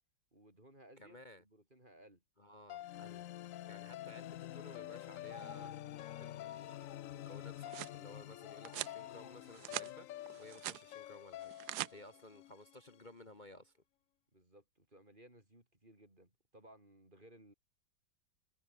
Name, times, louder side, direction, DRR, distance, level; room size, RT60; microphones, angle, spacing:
voice 1, 0.3-2.2 11.9-12.1 14.3-17.5, right 1 dB, 25° right, 5.6 m, -61 dB
voice 2, 1.0-1.4 2.4-3.3 3.7-5.7 6.2-11.5 11.9-13.8, left 1 dB, 25° left, 1.4 m, -56 dB
sound 1, 2.7-13.0, left 13 dB, 85° left, 0.7 m, -48 dB
sound 2, 5.2-7.1 8.4-9.4, left 7 dB, 55° left, 2.0 m, -54 dB
sound 3, 7.3-8.0 8.6-9.0 9.4-9.9 10.3-10.8 11.4-11.9, right 15 dB, 70° right, 1.0 m, -43 dB
omnidirectional pair, 2.0 m